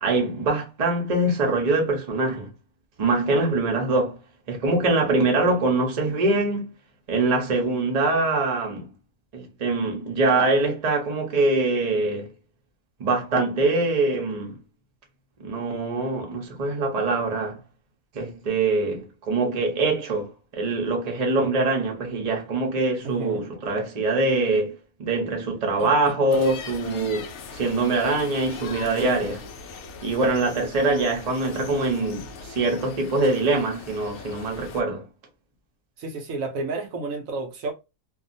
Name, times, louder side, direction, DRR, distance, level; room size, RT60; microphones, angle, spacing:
voice 1, 0.0-2.5 3.0-4.2 4.5-6.7 7.1-8.9 9.3-12.3 13.0-14.6 15.4-17.6 18.1-24.7 25.0-29.4 30.0-35.0, right 2 dB, 35° right, 0.7 m, -23 dB
voice 2, 23.0-23.4 25.8-25.9 36.0-37.7, right 3 dB, 70° right, 0.9 m, -31 dB
sound 1, 26.3-34.8, left 5 dB, 65° left, 0.7 m, -40 dB
2.6 x 2.3 x 2.5 m
omnidirectional pair, 1.5 m